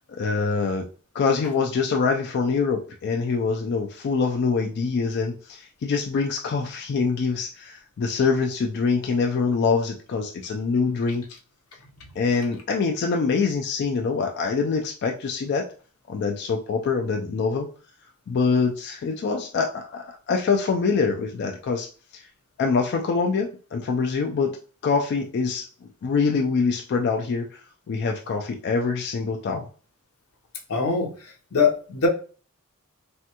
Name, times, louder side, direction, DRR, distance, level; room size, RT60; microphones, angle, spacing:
voice 1, 0.1-0.9 1.1-11.2 12.2-15.7 16.1-17.7 18.3-21.9 22.1-22.2 22.6-24.6 24.8-27.5 27.9-29.7, left 4 dB, 50° left, 2 dB, 0.3 m, -24 dB
voice 2, 30.7-31.1 31.5-32.1, left 4 dB, 80° left, 2 dB, 0.7 m, -22 dB
3.4 x 2.2 x 2.8 m, 0.39 s
head